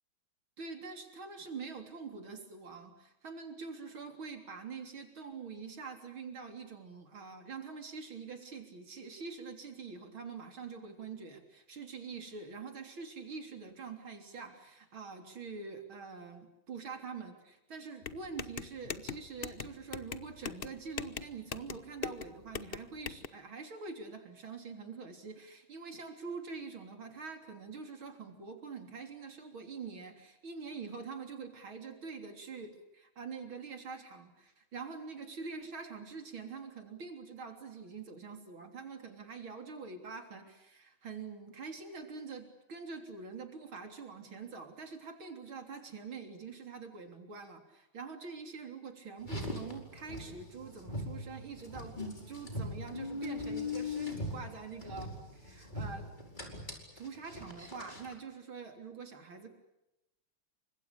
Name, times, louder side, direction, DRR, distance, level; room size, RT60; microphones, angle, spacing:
voice 1, 0.6-52.0 52.3-56.1 57.0-59.5, right 5 dB, 70° right, 5 dB, 4.3 m, -45 dB
sound 1, 18.0-23.3, left 6 dB, 45° left, 0.8 m, -41 dB
Car, 49.2-58.2, left 2 dB, 20° left, 4.9 m, -40 dB
28.5 x 25.5 x 6.9 m, 0.91 s
omnidirectional pair, 2.3 m